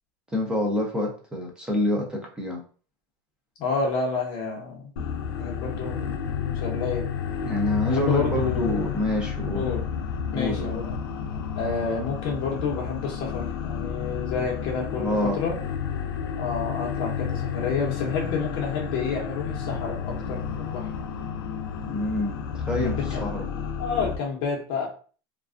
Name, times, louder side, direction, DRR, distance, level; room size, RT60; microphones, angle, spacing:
voice 1, 0.3-2.6 7.4-9.7 10.3-10.8 15.0-15.4 21.8-23.4, left 1 dB, 5° right, 0 dB, 0.5 m, -27 dB
voice 2, 3.6-4.8 5.4-6.1 6.5-7.1 7.9-8.9 9.5-9.9 10.3-10.9 11.5-15.6 16.4-20.9 22.8-24.9, left 5 dB, 40° left, -1 dB, 0.7 m, -29 dB
sound 1, 5.0-24.2, left 7 dB, 85° left, 0.4 m, -31 dB
2.4 x 2.2 x 2.4 m, 0.40 s
supercardioid pair, 160°, 12 cm